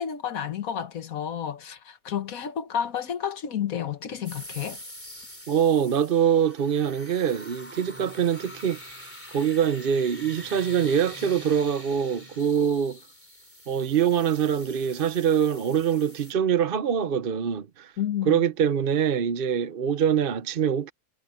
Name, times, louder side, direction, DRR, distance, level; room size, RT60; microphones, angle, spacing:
voice 1, 0.0-4.8 18.0-18.4, left 9 dB, 75° left, 1.6 m, -31 dB
sound 1, 4.2-16.3, equal, 10° left, 3.3 m, -45 dB
voice 2, 5.5-13.0 13.7-17.9 18.3-20.9, right 8 dB, 50° right, 0.8 m, -24 dB
omnidirectional pair, 1.5 m